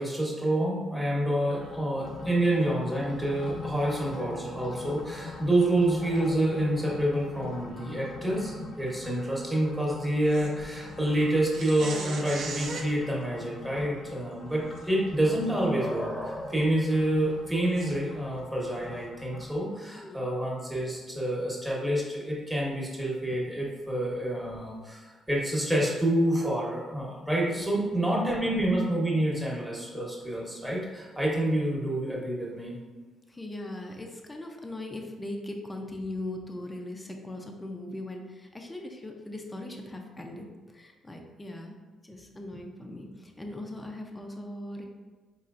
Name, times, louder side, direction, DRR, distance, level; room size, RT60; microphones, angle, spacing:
voice 1, 0.0-32.8, right 1 dB, 10° right, -3 dB, 1.1 m, -28 dB
sound 1, 1.4-19.6, left 3 dB, 65° left, 0.7 m, -44 dB
sound 2, 10.3-10.5 11.5-12.9 14.8-14.9 15.4-15.5 17.7-17.9, right 4 dB, 75° right, 0.5 m, -37 dB
voice 2, 19.9-20.3 27.5-27.8 33.3-41.8 42.0-44.8, left 1 dB, 15° left, 2 dB, 0.5 m, -39 dB
4.3 x 3.0 x 2.5 m, 1.3 s
cardioid pair, 90°, 0 cm